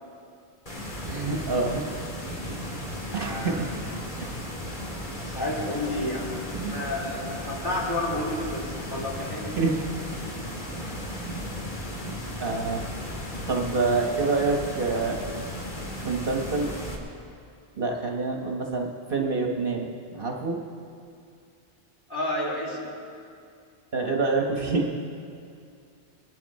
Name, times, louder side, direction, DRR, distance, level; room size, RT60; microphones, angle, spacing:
sound 1, 0.7-17.0, left 1 dB, 45° left, 2.2 m, -35 dB
voice 1, 1.1-1.8 2.5-3.7 4.2-4.3 6.5-6.9 9.5-9.8 10.1-10.2 11.3-11.7 12.4-12.8 13.5-15.2 16.0-16.7 17.8-20.6 23.9-24.9, right 3 dB, 55° right, 0 dB, 1.3 m, -27 dB
voice 2, 3.2-3.8 5.3-6.3 6.6-9.7 22.1-23.0, left 1 dB, 20° left, -6 dB, 3.5 m, -31 dB
23.0 x 11.5 x 4.2 m, 2.4 s
omnidirectional pair, 1.1 m